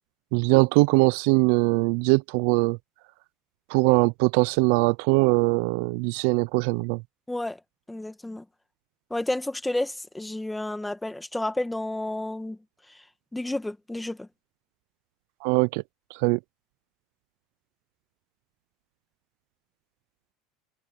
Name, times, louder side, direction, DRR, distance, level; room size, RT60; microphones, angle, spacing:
voice 1, 0.3-2.8 3.7-7.0 15.4-15.8 16.1-16.4, right 29 dB, 75° right, 0.3 m, -21 dB
voice 2, 7.3-7.6 7.9-8.4 9.1-12.6 12.9-13.0 13.3-14.3, left 1 dB, 5° left, 1.6 m, -31 dB
supercardioid pair, 130°, 0 cm